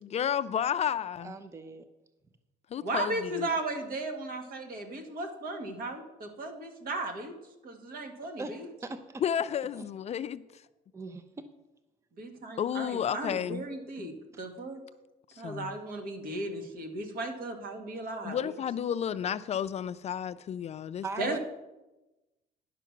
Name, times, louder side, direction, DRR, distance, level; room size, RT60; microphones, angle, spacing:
voice 1, 0.0-1.4 2.7-3.5 9.2-10.6 12.6-13.6 14.0-14.1 15.3-15.7 18.2-21.4, left 9 dB, 40° left, 0.4 m, -32 dB
voice 2, 1.2-1.9 8.4-8.5 8.8-9.2 9.7-9.8 10.9-11.2 21.0-21.4, right 3 dB, 15° right, 0.6 m, -39 dB
voice 3, 2.8-7.3 7.6-8.7 12.2-14.8 15.4-18.5 21.2-21.4, right 2 dB, 60° right, 1.8 m, -36 dB
10.5 x 6.0 x 5.9 m
cardioid pair, 110°, 17 cm